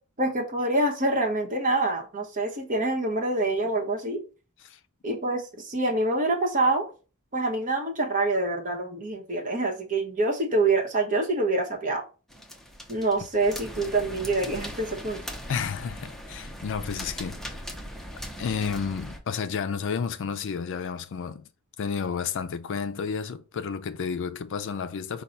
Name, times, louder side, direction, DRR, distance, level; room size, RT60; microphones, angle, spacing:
voice 1, 0.2-4.2 5.0-6.9 7.3-12.0 12.9-15.2, right 2 dB, 40° right, 1.0 m, -26 dB
sound 1, 12.3-19.2, equal, ahead, 0.6 m, -39 dB
voice 2, 15.5-17.4 18.4-21.5 21.8-25.2, left 6 dB, 60° left, 0.4 m, -31 dB
5.4 x 2.3 x 4.3 m
head